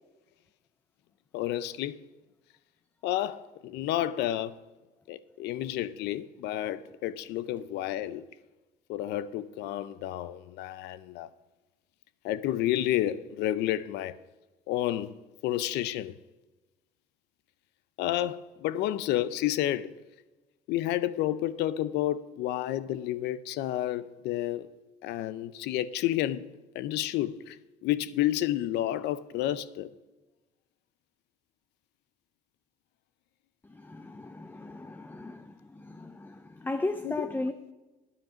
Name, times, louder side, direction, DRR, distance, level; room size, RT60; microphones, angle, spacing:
voice 1, 1.3-2.0 3.0-4.6 5.1-8.3 8.9-11.3 12.2-14.2 14.7-15.2 15.4-16.1 18.0-19.9 20.7-24.7 25.0-27.6 27.8-29.9 37.0-37.3, left 13 dB, 85° left, 0.5 m, -30 dB
voice 2, 33.6-37.7, left 2 dB, 10° left, 0.5 m, -36 dB
10.5 x 9.7 x 5.1 m
cardioid pair, 110°, 17 cm